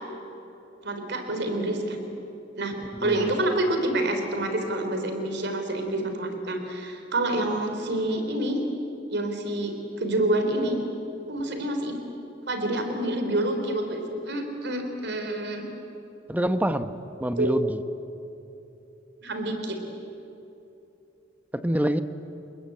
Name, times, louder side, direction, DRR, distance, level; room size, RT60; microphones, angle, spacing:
voice 1, 0.8-2.0 2.6-2.7 3.0-8.6 9.1-10.8 11.3-12.0 12.5-15.7 17.4-17.5 19.2-19.8, right 1 dB, 65° right, 5 dB, 3.6 m, -27 dB
voice 2, 3.0-3.3 16.3-16.9 17.2-17.8 21.5-22.0, right 1 dB, 10° right, 10 dB, 0.9 m, -26 dB
28.5 x 20.5 x 8.6 m, 2.8 s
head